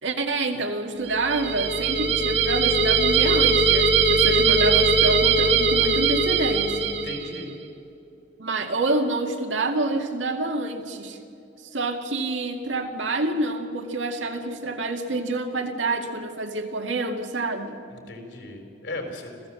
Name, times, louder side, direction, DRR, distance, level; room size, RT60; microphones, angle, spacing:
voice 1, 0.0-6.9 8.4-11.2 11.7-17.8, right 2 dB, 90° right, 4 dB, 2.1 m, -27 dB
sound 1, 1.1-7.4, right 4 dB, 65° right, 1.9 m, -21 dB
voice 2, 7.0-7.5 17.9-19.5, left 2 dB, 70° left, 3 dB, 4.3 m, -37 dB
26.0 x 16.0 x 7.6 m, 2.7 s
head